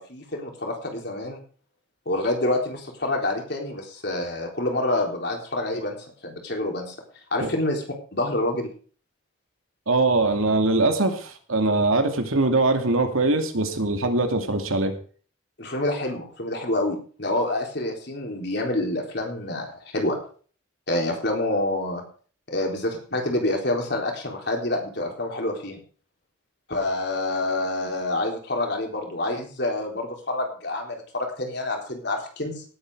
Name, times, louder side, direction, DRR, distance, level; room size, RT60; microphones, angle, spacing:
voice 1, 0.0-1.4 2.1-6.0 6.2-6.9 7.3-7.8 8.1-8.7 15.6-20.2 20.9-22.0 22.5-25.8 26.7-32.6, left 1 dB, 50° left, 2 dB, 3.9 m, -27 dB
voice 2, 9.9-14.9, right 2 dB, 85° right, 6 dB, 2.6 m, -22 dB
18.5 x 8.8 x 4.9 m, 0.42 s
head